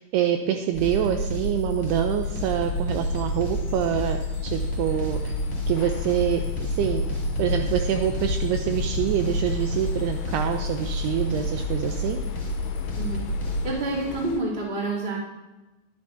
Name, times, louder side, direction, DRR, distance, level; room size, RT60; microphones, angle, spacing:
voice 1, 0.0-5.3 5.7-7.0 7.4-12.2, right 10 dB, 85° right, 5 dB, 2.3 m, -26 dB
sound 1, 0.7-13.7, equal, 15° left, 3.8 m, -29 dB
sound 2, 2.2-14.4, left 7 dB, 80° left, 2.7 m, -35 dB
voice 2, 13.6-15.2, right 2 dB, 15° right, -7 dB, 2.0 m, -28 dB
21.5 x 9.1 x 2.7 m, 1.1 s
omnidirectional pair, 5.3 m